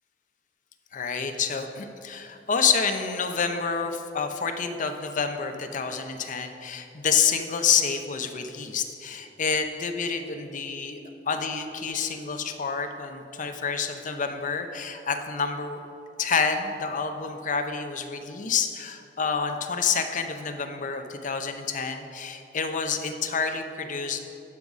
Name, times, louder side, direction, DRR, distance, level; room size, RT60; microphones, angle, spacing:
voice 1, 0.9-11.0 11.3-15.8 16.2-24.2, left 6 dB, 45° left, 6 dB, 0.6 m, -28 dB
12.0 x 4.0 x 6.1 m, 2.8 s
head